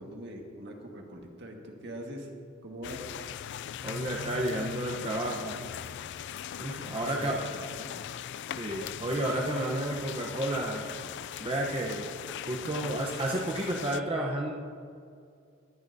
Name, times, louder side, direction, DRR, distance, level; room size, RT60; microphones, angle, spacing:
voice 1, 0.0-2.3 2.6-3.1 6.9-8.1, equal, 60° right, 1 dB, 1.6 m, -43 dB
sound 1, 2.8-14.0, left 9 dB, 60° left, 0.3 m, -40 dB
voice 2, 3.8-5.6 6.6-7.4 8.6-10.9 11.4-12.1 12.5-14.5, right 1 dB, 30° right, -1 dB, 0.8 m, -31 dB
20.5 x 9.9 x 2.7 m, 2.3 s
head